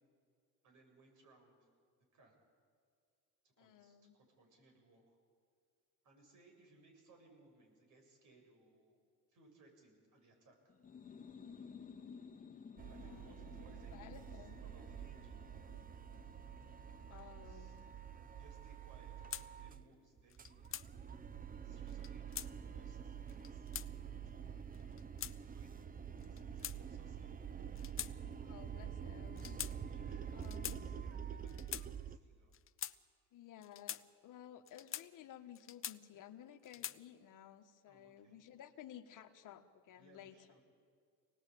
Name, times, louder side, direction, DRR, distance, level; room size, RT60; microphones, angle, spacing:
voice 1, 0.6-1.7 2.1-2.4 3.4-5.2 6.0-9.0 9.3-10.7 12.8-15.5 17.1-17.8 18.3-20.7 21.6-23.7 24.2-24.6 25.4-27.4 29.9-32.5 37.8-38.4 39.9-40.6, right 2 dB, 60° right, 2 dB, 7.5 m, -66 dB
voice 2, 3.6-4.2 13.0-13.4 13.9-14.5 17.1-17.8 24.8-25.3 28.4-29.6 30.3-30.8 33.3-40.4, left 10 dB, 65° left, 7 dB, 1.5 m, -56 dB
sound 1, 10.7-18.2, left 6 dB, 25° left, 2.2 m, -56 dB
sound 2, 12.8-19.9 20.2-32.2, right 8 dB, 25° right, 0.8 m, -47 dB
sound 3, 19.3-19.5 20.3-20.9 21.9-22.5 23.3-23.9 24.7-25.3 26.2-27.1 27.8-28.1 28.4-28.6 29.4-29.7 30.4-30.8 31.5-31.9 32.5-33.0 33.6-34.0 34.7-35.1 35.5-36.2 36.6-37.0, left 10 dB, 40° left, 0.7 m, -44 dB
27.0 x 19.0 x 8.6 m, 2.2 s
cardioid pair, 120°, 34 cm